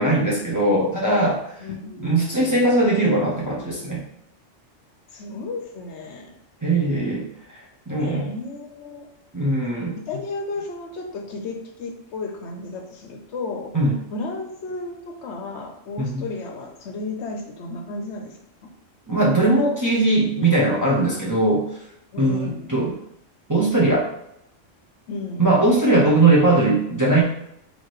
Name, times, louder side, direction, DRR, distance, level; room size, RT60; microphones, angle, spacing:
voice 1, 0.0-1.4 2.0-4.0 6.6-7.3 7.9-8.3 9.3-10.0 13.7-14.0 16.0-16.2 19.1-21.6 22.2-22.9 23.5-24.1 25.4-27.2, right 2 dB, 20° right, -5 dB, 0.6 m, -19 dB
voice 2, 1.6-3.4 5.1-6.4 7.9-9.1 9.6-13.7 14.1-18.4 22.1-22.8 25.1-25.6, left 3 dB, 65° left, 3 dB, 0.9 m, -34 dB
4.6 x 2.9 x 3.0 m, 0.79 s
omnidirectional pair, 1.3 m